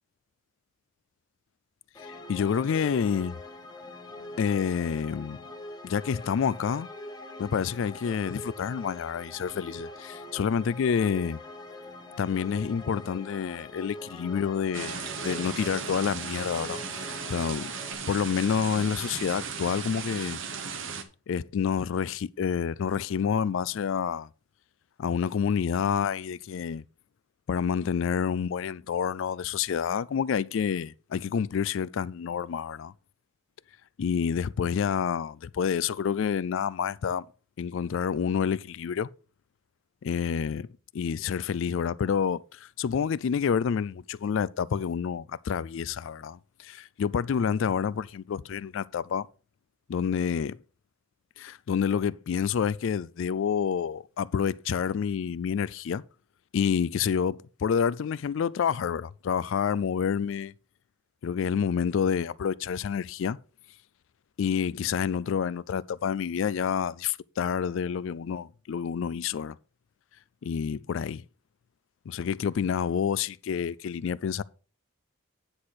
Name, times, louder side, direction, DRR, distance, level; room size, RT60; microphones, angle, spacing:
sound 1, 1.9-17.9, left 1 dB, 20° left, 1.0 m, -44 dB
voice 1, 2.0-3.4 4.4-5.4 5.8-6.9 7.4-11.4 12.2-17.7 18.1-20.4 21.3-24.3 25.0-26.8 27.5-32.9 34.0-37.3 37.6-39.1 40.0-40.7 40.9-49.3 49.9-50.6 51.4-56.0 56.5-60.5 61.2-63.4 64.4-69.6 70.4-71.2 72.1-74.4, left 7 dB, 60° left, 0.3 m, -28 dB
sound 2, 14.7-21.0, right 6 dB, 60° right, 1.0 m, -36 dB
9.7 x 4.2 x 6.3 m
head